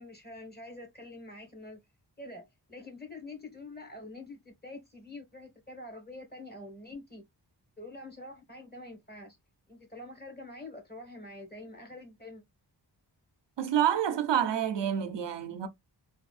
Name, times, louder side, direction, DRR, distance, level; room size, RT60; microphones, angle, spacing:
voice 1, 0.0-1.8 2.2-7.3 7.8-9.4 9.7-12.4, left 2 dB, 20° left, 1.5 m, -46 dB
voice 2, 13.6-15.7, right 9 dB, 85° right, 0.6 m, -28 dB
3.5 x 2.7 x 2.3 m
wide cardioid pair, 65°, 42 cm